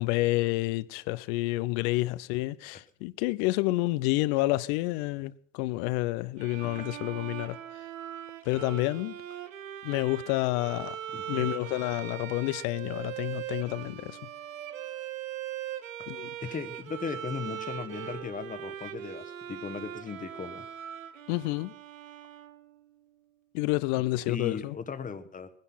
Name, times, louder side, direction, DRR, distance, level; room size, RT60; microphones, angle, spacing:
voice 1, 0.0-7.6 8.5-9.2 9.8-11.0 11.3-14.2 16.1-16.3 21.3-21.7 23.5-24.7, left 19 dB, 55° left, 0.6 m, -29 dB
Bowed string instrument, 6.4-22.9, right 11 dB, 90° right, 1.0 m, -40 dB
voice 2, 11.1-11.5 16.4-20.7 23.9-25.5, left 5 dB, 20° left, 1.2 m, -37 dB
20.0 x 10.5 x 5.6 m
hypercardioid pair, 95°, 38 cm